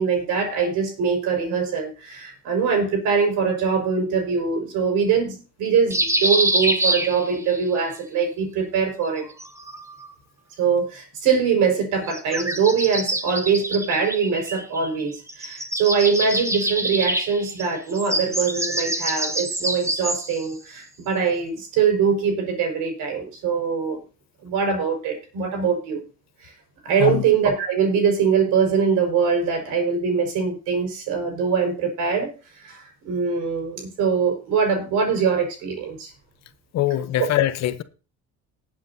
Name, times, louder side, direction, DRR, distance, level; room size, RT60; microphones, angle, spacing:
voice 1, 0.0-9.3 10.6-24.0 24.4-26.0 26.4-26.5 26.8-36.1, right 6 dB, 80° right, 5.3 m, -23 dB
sound 1, 5.9-7.6 9.1-10.1 12.0-15.0 15.3-20.5, right 1 dB, 10° right, 1.2 m, -26 dB
voice 2, 36.7-37.8, left 13 dB, 60° left, 1.0 m, -22 dB
20.0 x 7.8 x 2.8 m
cardioid pair, 130°, 30 cm